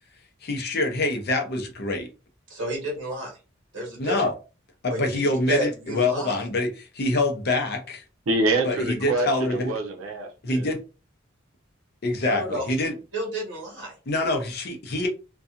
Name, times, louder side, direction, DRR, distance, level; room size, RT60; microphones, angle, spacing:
voice 1, 0.4-2.1 4.0-4.3 4.8-8.0 8.6-9.7 10.4-10.8 12.0-12.9 14.1-15.1, left 2 dB, 50° left, 0.6 m, -25 dB
voice 2, 2.5-3.4 3.7-4.2 4.9-5.2 5.5-6.4 12.3-14.0, right 1 dB, 60° right, 1.3 m, -31 dB
voice 3, 8.3-10.7, right 2 dB, 85° right, 0.7 m, -26 dB
2.6 x 2.3 x 2.4 m
head